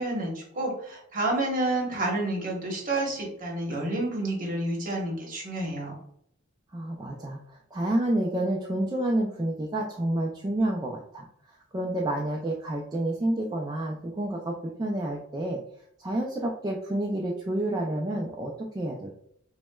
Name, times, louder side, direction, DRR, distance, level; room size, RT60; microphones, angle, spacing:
voice 1, 0.0-6.0, right 2 dB, 40° right, -1 dB, 1.0 m, -29 dB
voice 2, 6.7-11.3 11.7-15.6 16.0-19.2, right 1 dB, 20° right, -1 dB, 0.3 m, -29 dB
5.9 x 2.1 x 2.2 m, 0.68 s
head